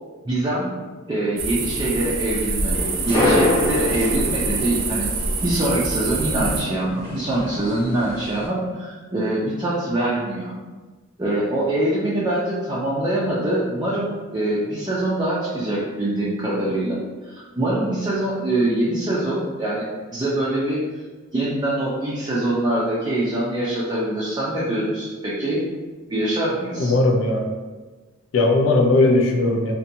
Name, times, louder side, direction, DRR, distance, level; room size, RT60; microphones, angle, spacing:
voice 1, 0.2-0.7 1.1-5.1 5.4-10.5 11.2-20.8 21.3-25.6 26.1-26.9, right 1 dB, 20° right, -7 dB, 0.4 m, -24 dB
sound 1, 1.4-6.6, right 3 dB, 85° right, 0.4 m, -26 dB
sound 2, 2.7-8.5, left 1 dB, 20° left, 0.9 m, -26 dB
voice 2, 26.8-27.5 28.3-29.7, left 2 dB, 70° left, 2 dB, 0.4 m, -18 dB
2.7 x 2.2 x 2.5 m, 1.3 s
head